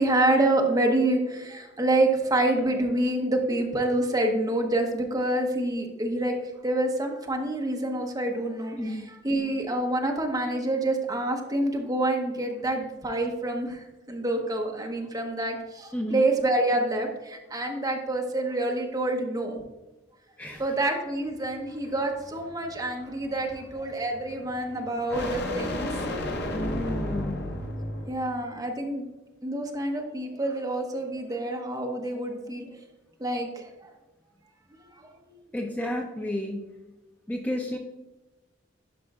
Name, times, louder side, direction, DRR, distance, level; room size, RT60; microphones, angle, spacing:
voice 1, 0.0-19.6 20.5-25.9 28.1-29.1 29.4-32.8 33.2-33.9 34.9-35.4, right 1 dB, 20° right, 2 dB, 0.9 m, -27 dB
voice 2, 8.8-9.1 15.9-16.2 20.4-20.6 26.5-27.4 35.5-36.7 37.3-37.8, left 1 dB, 10° left, 1 dB, 0.5 m, -31 dB
sound 1, 21.2-28.3, left 1 dB, 60° left, 0.8 m, -34 dB
11.0 x 5.1 x 2.4 m, 1.1 s
head